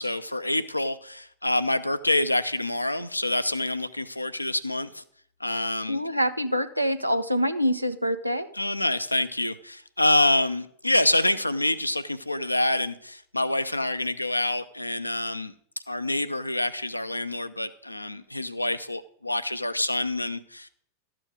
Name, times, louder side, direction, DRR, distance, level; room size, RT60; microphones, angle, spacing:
voice 1, 0.0-5.0 5.4-6.0 8.5-15.5 15.9-20.7, left 1 dB, 85° left, 11 dB, 0.6 m, -26 dB
voice 2, 5.9-8.5, equal, 90° right, 10 dB, 0.7 m, -25 dB
13.0 x 7.6 x 5.0 m, 0.62 s
figure-of-eight pair, 90°, 0 cm